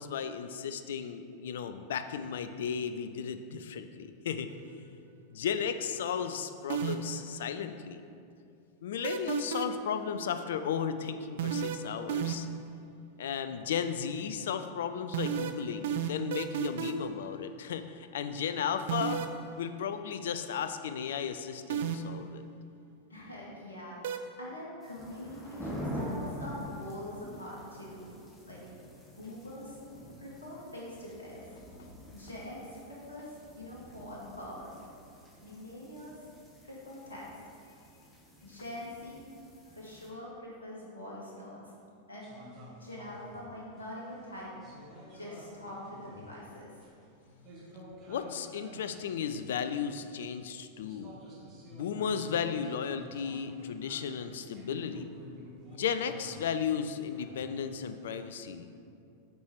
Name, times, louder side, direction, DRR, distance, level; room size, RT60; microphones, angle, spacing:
voice 1, 0.0-4.5 5.3-8.0 8.8-12.5 13.2-19.2 19.6-22.4 48.1-51.2 51.7-55.1 55.7-58.7, left 7 dB, 60° left, 9 dB, 0.4 m, -35 dB
sound 1, 6.7-7.2 9.0-9.9 11.4-12.6 15.1-17.1 18.9-19.4 21.7-22.2 24.0-24.2, right 9 dB, 55° right, 0.5 m, -32 dB
voice 2, 23.1-28.1 28.4-28.6 29.2-29.8 30.2-31.6 32.1-34.7 35.4-36.1 36.6-37.4 38.4-39.2 39.8-41.6 42.1-42.3 42.8-44.5 45.1-46.7, left 1 dB, 75° left, -5 dB, 1.7 m, -44 dB
sound 2, 24.8-40.1, equal, 10° left, 1.3 m, -45 dB
sound 3, 42.2-50.2 50.8-57.6, equal, 35° right, 1.6 m, -51 dB
8.1 x 4.7 x 4.5 m, 2.5 s
figure-of-eight pair, 90°, 0 cm